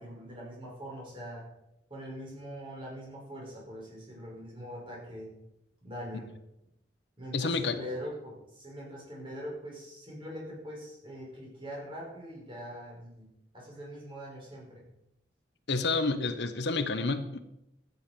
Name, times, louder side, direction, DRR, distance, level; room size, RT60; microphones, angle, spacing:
voice 1, 0.0-1.5 1.9-5.3 5.8-6.3 7.2-13.3 13.5-14.9, equal, 30° right, -3 dB, 6.0 m, -42 dB
voice 2, 7.3-7.8 15.7-17.4, left 3 dB, 75° left, 10 dB, 1.1 m, -29 dB
13.0 x 9.4 x 5.4 m, 0.85 s
head